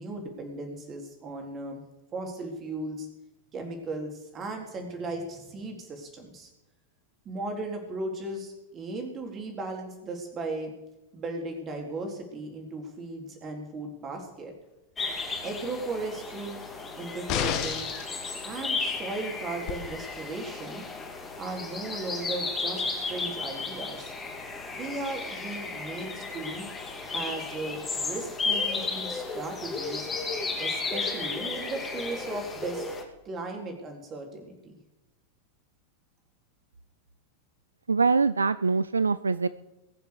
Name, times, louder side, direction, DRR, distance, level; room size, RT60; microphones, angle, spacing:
voice 1, 0.0-1.8 2.1-3.1 3.5-6.5 7.3-10.7 11.1-14.5 15.4-16.6 16.9-17.9 18.4-20.9 21.3-24.1 24.7-26.7 27.1-30.1 30.6-32.9 33.2-34.8, right 2 dB, 25° right, 3 dB, 3.8 m, -36 dB
sound 1, 15.0-33.0, left 4 dB, 20° left, 2.5 m, -34 dB
sound 2, 17.3-18.1 19.7-19.8, left 9 dB, 40° left, 1.7 m, -29 dB
voice 2, 37.9-39.5, right 4 dB, 75° right, 15 dB, 0.4 m, -23 dB
21.0 x 7.1 x 6.7 m, 1.0 s
figure-of-eight pair, 90°, 0 cm